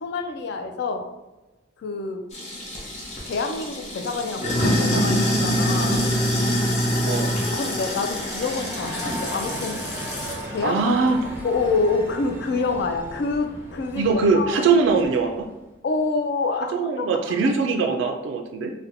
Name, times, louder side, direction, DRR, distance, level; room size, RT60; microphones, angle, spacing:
voice 1, 0.0-1.1 1.8-2.2 3.3-6.1 7.5-9.8 10.5-11.0 11.4-14.6 15.8-17.5, left 3 dB, 60° left, 6 dB, 0.3 m, -27 dB
Sink (filling or washing), 2.3-10.5, equal, 35° left, 0.7 m, -25 dB
sound 1, 7.0-15.6, right 1 dB, 10° right, 0.5 m, -37 dB
voice 2, 10.6-11.2 14.0-15.5 16.7-18.7, right 4 dB, 75° right, 3 dB, 0.3 m, -21 dB
2.6 x 2.1 x 4.0 m, 1.1 s
head